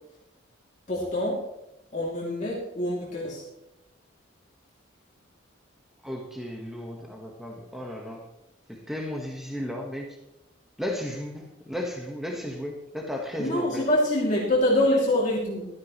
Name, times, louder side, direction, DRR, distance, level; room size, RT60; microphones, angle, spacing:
voice 1, 0.9-1.4 1.9-3.4 13.4-15.7, left 1 dB, 40° left, -5 dB, 2.7 m, -25 dB
voice 2, 6.0-8.3 8.7-10.2 10.8-13.8, left 1 dB, ahead, 0 dB, 1.3 m, -34 dB
15.5 x 13.0 x 3.2 m, 0.89 s
head